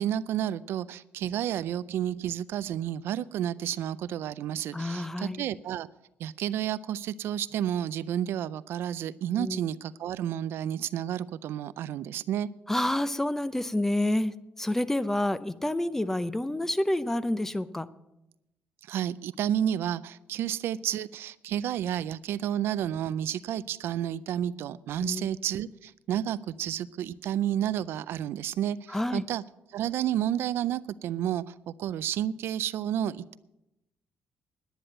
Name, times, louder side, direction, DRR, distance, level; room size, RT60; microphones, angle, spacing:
voice 1, 0.0-5.9 6.2-12.5 18.9-29.4 29.7-33.4, right 10 dB, 80° right, 16 dB, 0.4 m, -31 dB
voice 2, 4.7-5.4 9.4-9.6 12.7-17.9 25.0-25.3 28.9-29.2, left 1 dB, 10° left, 15 dB, 0.6 m, -28 dB
10.5 x 10.0 x 7.7 m, 0.91 s
cardioid pair, 100°, 4 cm